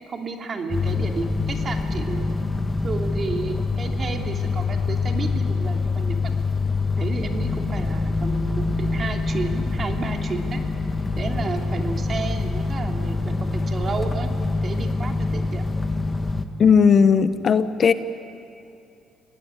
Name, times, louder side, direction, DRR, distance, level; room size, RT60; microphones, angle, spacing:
voice 1, 0.0-2.3 2.8-6.3 7.0-10.6 11.2-14.3 14.6-15.6, right 4 dB, 45° right, 3 dB, 3.0 m, -32 dB
sound 1, 0.7-16.5, left 3 dB, 25° left, 1.7 m, -25 dB
voice 2, 16.6-17.9, left 6 dB, 45° left, 12 dB, 1.0 m, -16 dB
26.5 x 18.0 x 9.8 m, 2.6 s
supercardioid pair, 80°, 0 cm